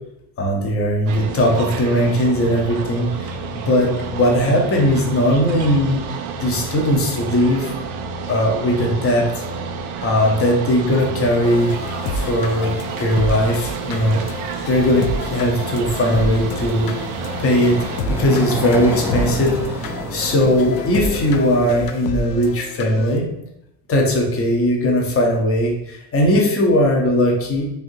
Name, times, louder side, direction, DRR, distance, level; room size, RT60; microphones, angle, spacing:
voice 1, 0.4-7.7 8.3-9.4 10.0-11.7 12.1-14.2 14.7-16.9 17.4-17.8 18.1-23.3 23.9-27.6, equal, 35° left, 0 dB, 0.9 m, -19 dB
sound 1, 1.1-18.0, right 5 dB, 90° right, 0.5 m, -30 dB
sound 2, 11.4-23.2, left 2 dB, 55° left, 0.5 m, -30 dB
sound 3, 16.0-21.9, right 1 dB, 5° right, 0.4 m, -30 dB
3.4 x 2.7 x 2.6 m, 0.82 s
supercardioid pair, 90°, 42 cm